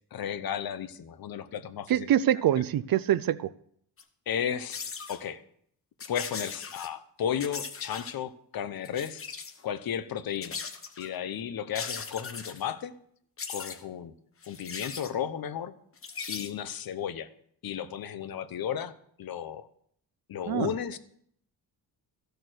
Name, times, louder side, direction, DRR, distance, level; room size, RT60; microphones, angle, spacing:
voice 1, 0.1-2.1 4.3-4.8 5.1-5.4 6.1-9.2 9.6-10.6 11.0-12.9 13.5-14.1 14.5-15.7 16.3-17.3 17.6-18.9 19.2-19.7 20.3-21.0, left 9 dB, 55° left, 13 dB, 0.9 m, -34 dB
voice 2, 1.9-3.5 20.5-20.7, right 11 dB, 55° right, 17 dB, 0.5 m, -25 dB
sound 1, 4.0-4.1 4.7-5.2 6.0-6.9 7.4-8.1 8.8-9.6 10.4-11.1 11.7-12.6 13.4-13.8 14.4-15.1 16.0-16.5, left 5 dB, 30° left, 1.1 m, -39 dB
14.5 x 6.8 x 6.3 m, 0.66 s
cardioid pair, 140°, 42 cm